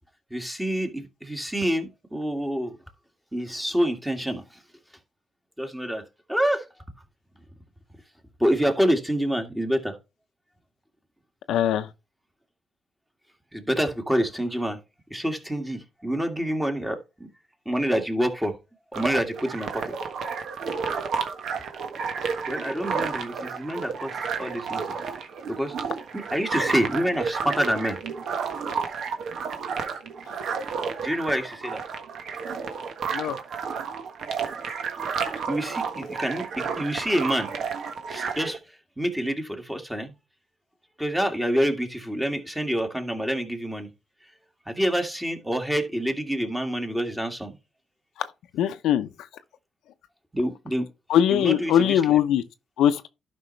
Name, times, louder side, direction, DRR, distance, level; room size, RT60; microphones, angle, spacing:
voice 1, 0.3-2.8 3.3-4.4 5.6-6.6 8.4-10.0 13.5-14.8 15.1-17.3 17.7-18.6 18.9-20.0 22.5-25.0 25.5-25.8 26.1-28.0 31.0-31.8 35.5-37.5 38.1-38.6 39.0-40.1 41.0-43.9 44.7-47.6 50.3-50.9 51.3-52.2, equal, 10° right, 2.0 m, -27 dB
voice 2, 11.5-11.9 33.1-33.4 48.2-48.3 48.5-49.1 51.1-52.4 52.8-53.1, left 10 dB, 85° left, 0.7 m, -21 dB
sound 1, 18.9-38.6, right 5 dB, 65° right, 1.4 m, -31 dB
11.5 x 5.4 x 3.2 m
cardioid pair, 90°, 0 cm